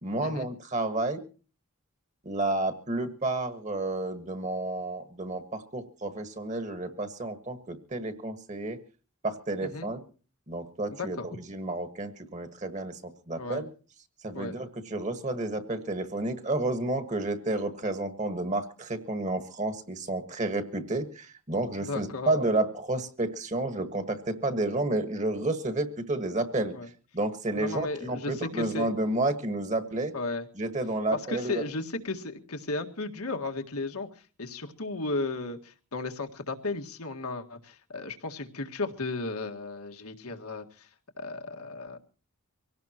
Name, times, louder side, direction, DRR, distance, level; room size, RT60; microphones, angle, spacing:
voice 1, 0.0-1.2 2.2-8.8 9.2-10.0 10.5-13.0 13.3-13.7 14.2-26.7 27.1-30.1 30.6-31.6, right 2 dB, 30° right, 8 dB, 1.5 m, -31 dB
voice 2, 11.0-11.4 13.4-13.6 14.3-14.5 21.9-22.3 26.7-26.9 27.5-28.9 30.1-30.5 31.1-34.1 34.4-40.9 41.2-42.0, left 3 dB, 80° left, 5 dB, 1.9 m, -35 dB
24.5 x 17.5 x 3.0 m, 0.37 s
head